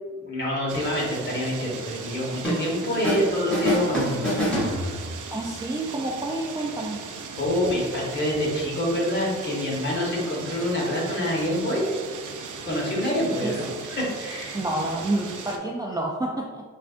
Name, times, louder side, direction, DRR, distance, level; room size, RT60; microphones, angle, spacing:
voice 1, 0.2-4.1 4.5-5.0 7.4-11.8 12.6-14.6, left 1 dB, 35° left, -4 dB, 1.3 m, -26 dB
sound 1, 0.7-15.6, right 5 dB, 75° right, 0.5 m, -38 dB
sound 2, 2.4-3.3 3.5-5.3, equal, 5° left, 1.5 m, -26 dB
voice 2, 5.3-7.0 13.4-13.5 14.5-16.6, right 2 dB, 15° right, -3 dB, 0.3 m, -28 dB
5.7 x 2.5 x 2.4 m, 1.5 s
wide cardioid pair, 110°, 31 cm